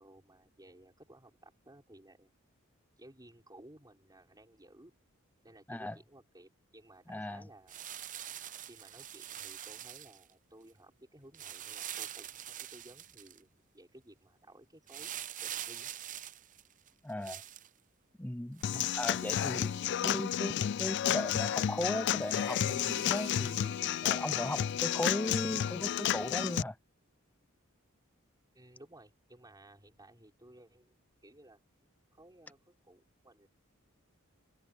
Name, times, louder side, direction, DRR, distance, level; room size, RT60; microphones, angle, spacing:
voice 1, 0.0-2.3 3.0-4.9 5.4-7.8 8.6-15.1 15.4-15.9 28.5-31.0 31.2-31.6 32.1-33.5, right 1 dB, 20° right, 5.6 m, -57 dB
voice 2, 7.1-7.5 17.0-17.4 18.2-23.7 24.0-26.8, left 1 dB, 10° left, 0.6 m, -37 dB
sound 1, 7.7-10.3 11.3-13.4 14.9-17.7 18.6-20.2 20.7-20.8 21.2-21.3 22.2-23.8 24.7-24.8, right 11 dB, 40° right, 0.6 m, -45 dB
Human voice / Acoustic guitar / Drum, 18.6-26.6, left 10 dB, 55° left, 0.3 m, -31 dB
head